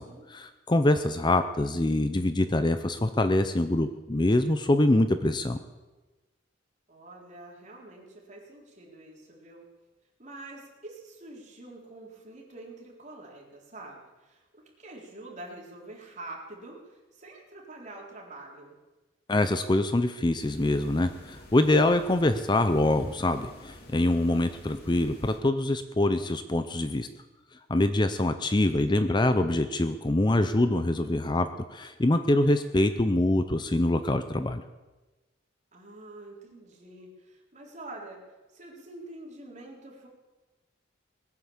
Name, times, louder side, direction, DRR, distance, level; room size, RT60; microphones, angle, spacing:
voice 1, 0.3-5.6 19.3-27.1 27.7-34.6, left 1 dB, 25° left, 10 dB, 0.6 m, -24 dB
voice 2, 6.9-9.7 10.2-18.8 28.9-29.4 35.7-38.2 38.5-40.1, right 2 dB, 40° right, -2 dB, 3.8 m, -46 dB
sound 1, 20.4-25.4, left 1 dB, 55° left, 3.0 m, -49 dB
20.0 x 9.4 x 7.3 m, 1.2 s
head